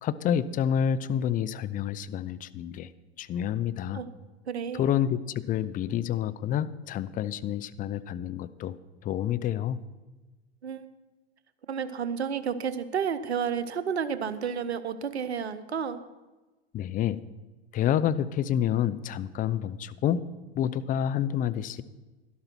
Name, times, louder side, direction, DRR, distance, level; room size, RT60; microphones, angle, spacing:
voice 1, 0.0-2.9 3.2-4.0 4.8-9.8 16.7-17.2 17.7-20.2 20.5-21.8, left 9 dB, 25° left, 15 dB, 0.5 m, -28 dB
voice 2, 4.5-4.8 10.6-10.9 11.7-16.0, right 7 dB, 85° right, 13 dB, 0.9 m, -31 dB
12.5 x 12.0 x 4.5 m, 1.2 s
hypercardioid pair, 90°, 32 cm